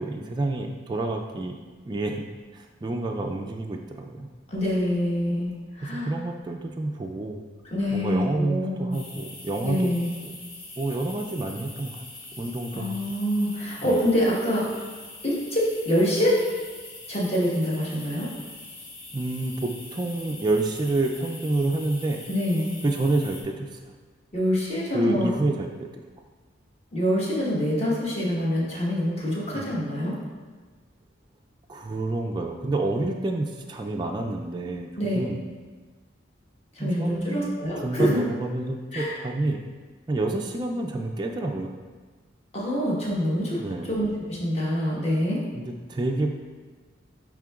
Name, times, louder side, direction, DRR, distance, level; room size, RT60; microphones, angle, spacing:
voice 1, 0.0-1.6 1.9-2.3 2.5-4.3 5.8-7.4 7.9-9.9 10.3-10.4 10.8-12.0 12.4-13.0 13.8-14.0 19.1-22.2 22.8-23.8 24.9-26.0 29.5-29.7 31.7-35.4 36.8-37.6 37.8-39.6 40.1-41.7 43.6-43.9 45.5-46.4, right 2 dB, 20° right, 2 dB, 0.3 m, -28 dB
voice 2, 4.5-6.1 7.7-9.0 9.6-10.1 12.7-14.7 15.2-16.4 17.1-18.3 22.3-22.7 24.3-25.3 26.9-30.1 35.0-35.2 36.7-38.2 38.9-39.2 42.5-43.6 43.9-45.4, equal, 35° left, -5 dB, 1.2 m, -25 dB
sound 1, 8.9-23.4, left 2 dB, 65° left, 1.6 m, -43 dB
11.0 x 3.7 x 2.3 m, 1.4 s
head